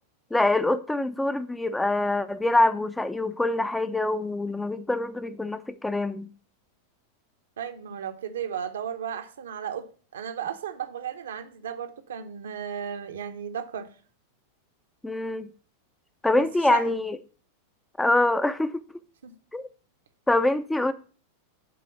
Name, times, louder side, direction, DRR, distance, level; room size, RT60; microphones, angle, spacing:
voice 1, 0.3-6.3 15.0-15.5 16.2-17.2 18.0-18.8 19.5-19.6 20.3-20.9, left 2 dB, 5° left, 0.4 m, -25 dB
voice 2, 7.6-13.9 16.3-16.4 16.7-16.9 19.2-19.3, right 8 dB, 65° right, 0.7 m, -34 dB
7.9 x 3.7 x 6.5 m
figure-of-eight pair, 90°, 0 cm